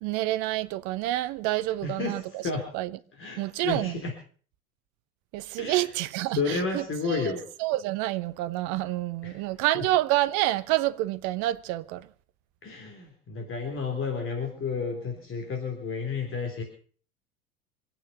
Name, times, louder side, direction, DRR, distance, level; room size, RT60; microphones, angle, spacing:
voice 1, 0.0-2.4 2.7-2.9 3.4-3.9 5.3-6.8 7.1-7.3 7.6-12.1, right 16 dB, 45° right, 1.0 m, -28 dB
voice 2, 1.8-2.7 3.1-4.1 5.6-5.9 6.3-7.4 9.2-9.4 9.7-9.8 12.6-16.6, left 4 dB, 30° left, 3.6 m, -31 dB
26.0 x 9.1 x 5.7 m
figure-of-eight pair, 80°, 42 cm